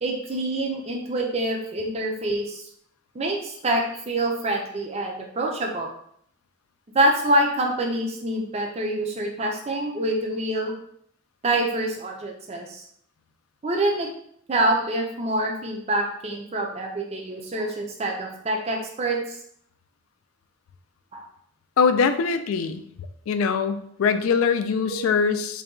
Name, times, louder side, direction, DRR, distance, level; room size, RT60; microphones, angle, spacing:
voice 1, 0.0-2.6 3.1-5.9 6.9-10.7 11.4-12.8 13.6-14.1 14.5-19.4 21.1-21.2 24.9-25.0, right 1 dB, 30° right, 1 dB, 0.5 m, -26 dB
voice 2, 21.8-22.8 23.3-25.6, left 5 dB, 75° left, 9 dB, 0.3 m, -22 dB
3.9 x 2.3 x 3.6 m, 0.66 s
head